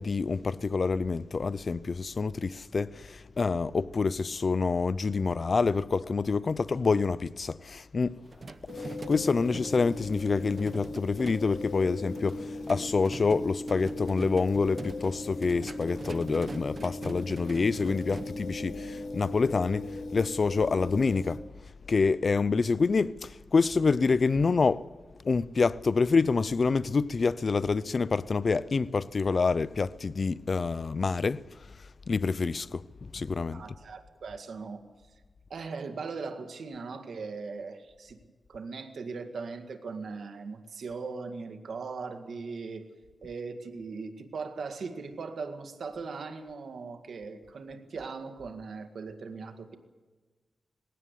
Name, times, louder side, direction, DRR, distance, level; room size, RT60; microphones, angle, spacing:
voice 1, 0.0-8.2 8.8-19.9 20.1-21.4 21.9-24.8 25.2-31.4 32.1-32.8 33.1-33.6, left 4 dB, 50° left, 0.5 m, -27 dB
sound 1, 8.2-18.3, right 3 dB, 45° right, 0.9 m, -44 dB
sound 2, 8.7-21.4, left 2 dB, 85° left, 2.4 m, -38 dB
voice 2, 33.5-34.8 35.5-38.2 38.5-42.9 43.2-49.7, right 4 dB, 75° right, 1.9 m, -39 dB
19.5 x 17.0 x 8.3 m
wide cardioid pair, 85°, 0 cm